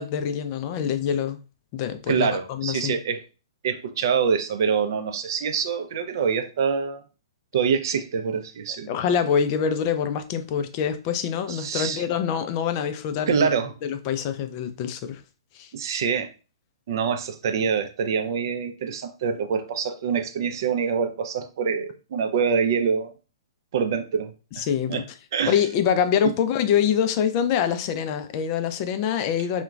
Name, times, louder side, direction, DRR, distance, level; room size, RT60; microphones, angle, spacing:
voice 1, 0.0-1.4 1.7-2.9 8.9-13.5 13.8-15.2 15.5-15.7 24.6-25.0 25.5-29.6, left 8 dB, 35° left, 0.3 m, -25 dB
voice 2, 2.1-3.2 3.6-7.0 7.5-8.9 11.5-12.0 13.3-13.7 15.7-16.3 16.9-23.1 23.7-25.0 25.3-25.6, right 6 dB, 50° right, 0.4 m, -25 dB
3.7 x 2.1 x 2.3 m
figure-of-eight pair, 120°, 3 cm